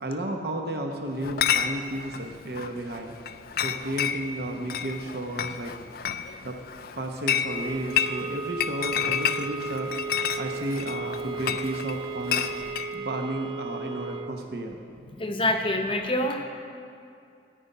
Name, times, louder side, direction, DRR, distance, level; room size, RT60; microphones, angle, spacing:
voice 1, 0.0-3.4 3.6-6.1 6.4-6.6 7.0-9.9 10.4-12.5 12.9-14.8, right 1 dB, 55° right, 3 dB, 0.9 m, -33 dB
Chatter / Chink clink, 1.2-12.9, left 9 dB, 55° left, 0.4 m, -30 dB
sound 1, 7.4-14.4, right 4 dB, 25° right, 0.3 m, -35 dB
voice 2, 15.0-16.4, left 1 dB, 30° left, 5 dB, 0.8 m, -26 dB
13.5 x 5.4 x 9.3 m, 2.5 s
head